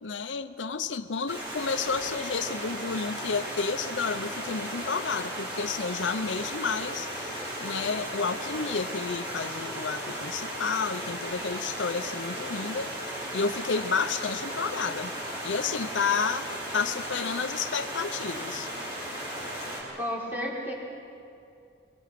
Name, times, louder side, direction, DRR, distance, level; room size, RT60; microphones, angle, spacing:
voice 1, 0.0-12.9 13.3-15.1 15.4-18.7, left 5 dB, 90° left, 11 dB, 0.7 m, -31 dB
Stream, 1.3-19.8, equal, 25° right, 6.0 m, -36 dB
voice 2, 20.0-20.7, equal, 10° right, -4 dB, 4.7 m, -32 dB
24.5 x 23.0 x 6.0 m, 2.5 s
head